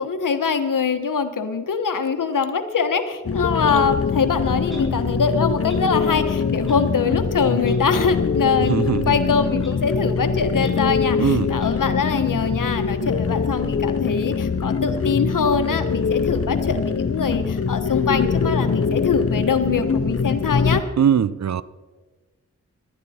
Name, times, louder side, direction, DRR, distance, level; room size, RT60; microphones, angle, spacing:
voice 1, 0.0-20.8, left 5 dB, 80° left, 1.2 m, -23 dB
sound 1, 3.2-20.8, left 5 dB, 45° left, 0.8 m, -23 dB
Clock, 4.7-4.8 5.7-5.8 6.7-6.8 7.6-7.7 8.6-8.7 9.6-9.7 10.6-10.7 11.6-11.7, equal, ahead, 6.0 m, -43 dB
voice 2, 8.6-9.2 11.2-11.5 18.9-19.0 21.0-21.6, right 8 dB, 60° right, 0.6 m, -21 dB
18.5 x 12.0 x 4.3 m
cardioid pair, 55°, 31 cm